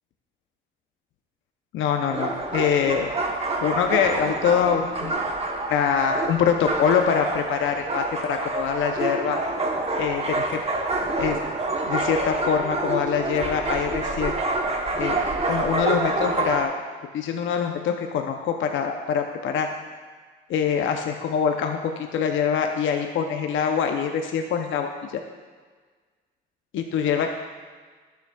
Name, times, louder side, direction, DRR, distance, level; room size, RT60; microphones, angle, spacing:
voice 1, 1.7-3.1 3.6-5.2 5.7-9.4 10.0-10.6 11.2-11.4 11.8-14.3 15.0-15.2 15.5-16.7 17.1-19.7 20.5-25.2 26.7-27.3, left 7 dB, 75° left, 4 dB, 0.7 m, -24 dB
sound 1, 2.1-16.6, right 2 dB, 30° right, 0.9 m, -27 dB
11.5 x 6.9 x 2.3 m, 1.5 s
cardioid pair, 90°, 20 cm